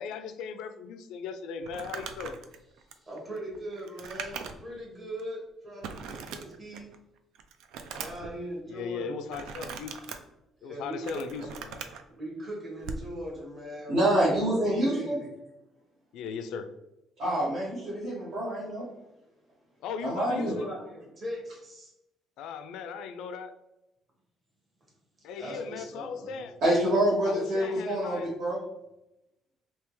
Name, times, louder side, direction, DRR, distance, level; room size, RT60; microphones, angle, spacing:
voice 1, 0.0-2.4 8.7-10.0 10.6-11.8 16.1-16.7 19.8-20.7 22.4-23.5 25.2-26.6 27.3-28.3, left 6 dB, 85° left, 9 dB, 0.3 m, -37 dB
Crumpling crinkling, 1.6-4.8 5.2-5.3 5.8-7.0 7.3-8.3 9.3-10.2 10.8-12.0 12.8-13.1, right 6 dB, 85° right, 0.3 m, -40 dB
voice 2, 2.9-6.9 8.0-9.2 10.6-11.2 12.1-15.3 20.3-21.9 25.3-26.4, right 1 dB, 25° right, -3 dB, 1.2 m, -40 dB
voice 3, 13.9-15.2 17.2-18.9 20.0-20.6 26.6-28.6, right 1 dB, 60° right, -8 dB, 1.3 m, -26 dB
3.3 x 2.9 x 3.0 m, 0.91 s
cardioid pair, 155°, 0 cm